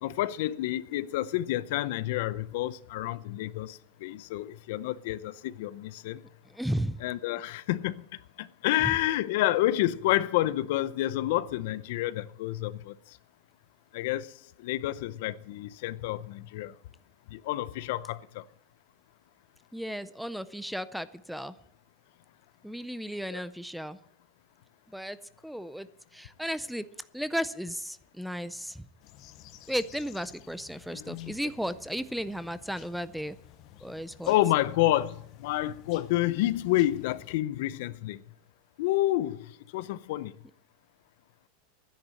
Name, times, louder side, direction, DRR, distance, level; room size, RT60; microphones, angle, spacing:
voice 1, 0.0-6.2 7.0-8.1 8.4-12.9 13.9-14.3 14.6-16.7 17.3-18.4 23.3-23.4 30.9-31.3 34.3-38.2 38.8-39.5 39.7-40.3, left 15 dB, 65° left, 0.6 m, -29 dB
voice 2, 6.5-7.0 19.7-21.5 22.6-24.0 24.9-25.2 25.4-25.9 26.1-26.8 27.1-28.9 29.7-33.4 33.8-34.3, equal, ahead, 0.5 m, -34 dB
sound 1, 29.0-37.4, left 11 dB, 40° left, 0.9 m, -54 dB
12.0 x 10.0 x 7.6 m
supercardioid pair, 150°, 0 cm